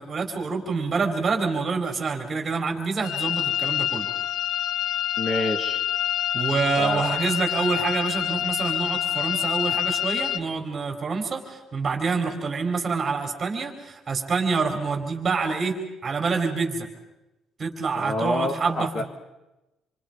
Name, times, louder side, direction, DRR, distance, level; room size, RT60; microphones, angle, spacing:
voice 1, 0.0-4.1 6.3-16.9 17.6-19.0, right 4 dB, 25° right, 4 dB, 4.3 m, -27 dB
sound 1, 3.0-10.4, left 11 dB, 75° left, 0.8 m, -27 dB
voice 2, 5.2-5.8 6.8-7.2 18.0-19.1, left 1 dB, 30° left, 5 dB, 2.0 m, -27 dB
28.5 x 25.0 x 5.2 m, 0.98 s
cardioid pair, 130°, 0 cm